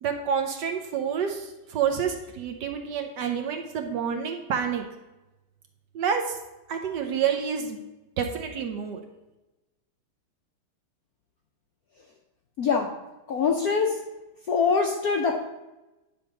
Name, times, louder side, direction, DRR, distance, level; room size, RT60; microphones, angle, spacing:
voice 1, 0.0-4.8 5.9-6.4 6.7-7.8 8.2-9.0, right 7 dB, 70° right, 4 dB, 1.1 m, -28 dB
voice 2, 12.6-12.9 13.3-14.0 14.5-15.4, left 5 dB, 75° left, 2 dB, 0.8 m, -23 dB
9.8 x 3.5 x 6.2 m, 1.0 s
omnidirectional pair, 2.4 m